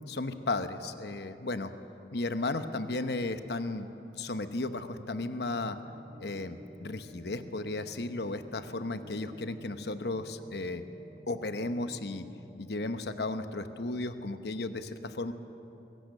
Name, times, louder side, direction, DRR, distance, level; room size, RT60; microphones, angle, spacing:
voice 1, 0.1-1.7 2.1-3.9 4.2-5.8 6.2-10.8 11.3-12.2 12.6-15.3, left 2 dB, 70° left, 9 dB, 1.0 m, -34 dB
sound 1, 4.9-12.4, equal, 55° right, 2.1 m, -54 dB
23.5 x 17.0 x 6.7 m, 2.9 s
head